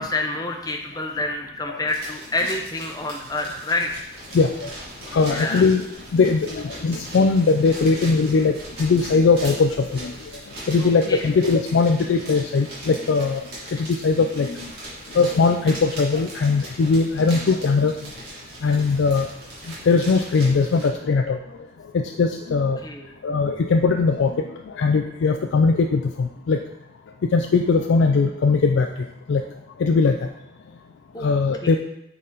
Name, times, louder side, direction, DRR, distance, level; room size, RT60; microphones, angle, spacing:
voice 1, 0.0-3.9 5.3-5.6 10.8-11.2 18.6-18.7 22.8-23.1 31.1-31.3 31.6-31.8, left 2 dB, 20° left, 2 dB, 0.7 m, -28 dB
sound 1, 1.9-20.9, right 1 dB, 55° right, 2.4 m, -39 dB
voice 2, 4.3-4.7 5.1-5.8 6.1-10.1 10.7-14.7 15.1-17.9 18.6-19.3 19.9-21.4 21.9-22.8 23.2-26.6 27.3-28.9 29.3-29.4 29.8-30.2 31.2-31.8, left 4 dB, 75° left, 4 dB, 0.4 m, -20 dB
7.4 x 4.1 x 3.8 m, 0.83 s
head